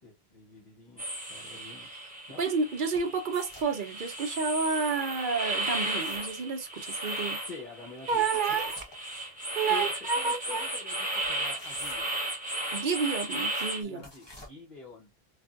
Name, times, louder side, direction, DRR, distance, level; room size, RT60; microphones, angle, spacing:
voice 1, 0.0-2.4 7.4-8.7 9.7-12.2 13.8-15.1, left 5 dB, 45° left, 1.2 m, -46 dB
sound 1, 1.0-13.8, right 1 dB, 10° right, 1.1 m, -34 dB
voice 2, 2.4-7.4 8.1-8.7 9.5-10.6 12.7-14.1, right 5 dB, 55° right, 0.8 m, -30 dB
sound 2, 2.9-3.8 5.7-6.3 8.1-9.0 11.2-12.3 14.0-14.5, left 1 dB, 25° left, 1.1 m, -50 dB
3.4 x 2.5 x 2.5 m
omnidirectional pair, 1.0 m